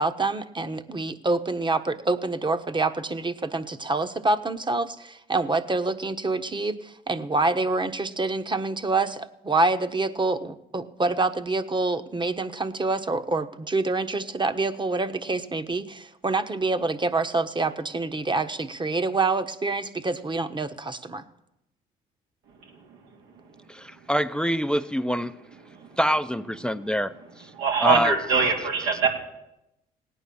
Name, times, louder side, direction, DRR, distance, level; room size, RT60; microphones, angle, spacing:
voice 1, 0.0-21.2, right 3 dB, 25° right, 10 dB, 1.3 m, -26 dB
voice 2, 23.7-25.3 26.0-27.5 27.8-28.1 28.6-28.7, equal, 5° left, 13 dB, 0.7 m, -25 dB
voice 3, 27.6-29.1, right 4 dB, 85° right, 1 dB, 3.1 m, -22 dB
17.5 x 9.3 x 7.1 m, 0.87 s
supercardioid pair, 60°, 19 cm